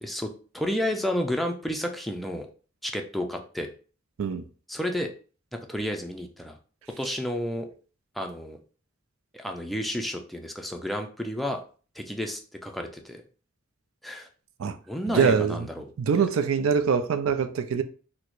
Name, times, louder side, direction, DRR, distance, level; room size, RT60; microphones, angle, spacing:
voice 1, 0.0-2.5 2.8-3.7 4.7-5.1 5.7-6.6 7.0-7.7 8.2-8.6 9.3-11.6 12.0-13.2 14.0-14.3 14.6-15.9 16.1-16.3, equal, ahead, 0.4 m, -31 dB
voice 2, 15.1-15.7 16.0-17.8, right 6 dB, 90° right, 0.4 m, -24 dB
4.4 x 2.1 x 2.5 m
head